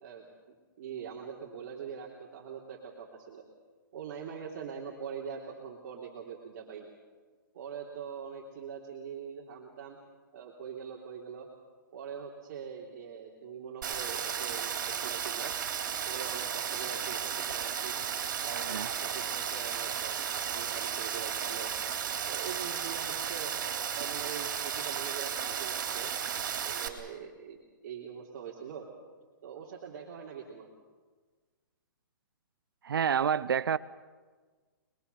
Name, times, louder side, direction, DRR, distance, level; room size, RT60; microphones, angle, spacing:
voice 1, 0.0-3.4 3.9-6.9 7.5-10.0 10.3-11.5 11.9-15.6 16.0-17.9 18.4-21.7 22.3-23.5 23.9-26.1 26.6-27.6 27.8-28.9 29.4-30.7, right 7 dB, 45° right, -2 dB, 3.3 m, -43 dB
Rain, 13.8-26.9, right 8 dB, 60° right, 3.7 m, -34 dB
voice 2, 18.5-18.9 32.8-33.8, right 7 dB, 90° right, 16 dB, 0.7 m, -28 dB
26.5 x 22.0 x 7.0 m, 1.4 s
hypercardioid pair, 160°, 11 cm